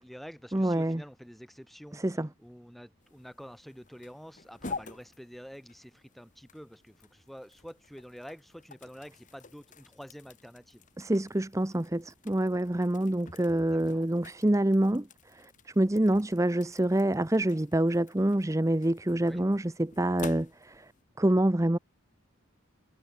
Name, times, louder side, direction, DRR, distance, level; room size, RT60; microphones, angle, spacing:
voice 1, 0.0-10.9 13.6-14.1 19.2-19.4, equal, ahead, 4.4 m, -48 dB
voice 2, 0.5-1.0 1.9-2.3 11.0-15.5 15.8-20.9 21.2-21.8, right 1 dB, 15° right, 0.7 m, -26 dB
sound 1, 3.0-21.0, left 4 dB, 35° left, 2.4 m, -49 dB
head